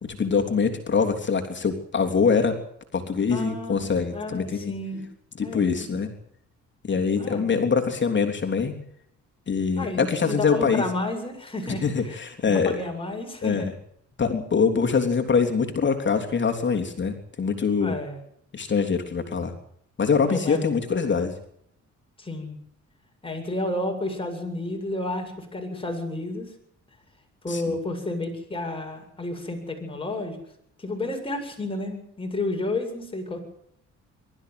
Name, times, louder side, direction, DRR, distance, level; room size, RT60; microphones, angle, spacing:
voice 1, 0.0-2.6 2.9-4.7 5.4-6.1 6.8-8.8 9.5-10.8 11.8-12.8 13.4-13.7 14.2-18.0 18.5-19.5 20.0-21.3 27.5-27.7, left 5 dB, 40° left, 4 dB, 3.4 m, -24 dB
voice 2, 3.3-3.8 4.1-5.0 5.4-5.7 7.2-7.4 9.8-12.2 12.4-13.7 17.8-18.2 20.3-20.8 22.2-22.6 23.2-26.5 27.4-30.4 30.8-33.4, left 2 dB, 20° left, 3 dB, 7.8 m, -31 dB
22.5 x 13.5 x 9.6 m, 0.70 s
cardioid pair, 90°, 30 cm